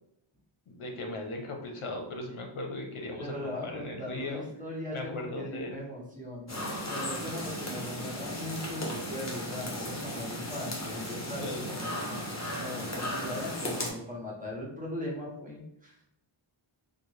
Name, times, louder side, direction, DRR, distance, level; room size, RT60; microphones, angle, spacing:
voice 1, 0.7-4.4 4.9-5.8 11.1-11.7, left 2 dB, 75° left, 3 dB, 0.7 m, -38 dB
voice 2, 3.2-16.0, left 1 dB, 15° right, -4 dB, 1.1 m, -39 dB
sound 1, 6.5-13.9, left 1 dB, 30° left, 0.9 m, -36 dB
3.7 x 2.1 x 3.1 m, 0.77 s
wide cardioid pair, 70°, 50 cm